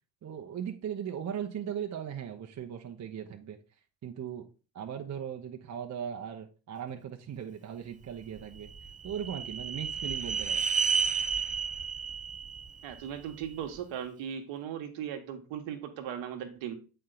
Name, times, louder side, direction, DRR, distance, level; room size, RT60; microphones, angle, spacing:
voice 1, 0.2-3.6 4.0-4.5 4.7-8.7 9.0-10.6, right 8 dB, 35° right, 0.9 m, -38 dB
sound 1, 8.4-13.6, right 5 dB, 15° right, 0.5 m, -32 dB
voice 2, 12.8-16.7, right 9 dB, 65° right, 1.3 m, -38 dB
7.6 x 4.5 x 3.9 m
hypercardioid pair, 65°, 50 cm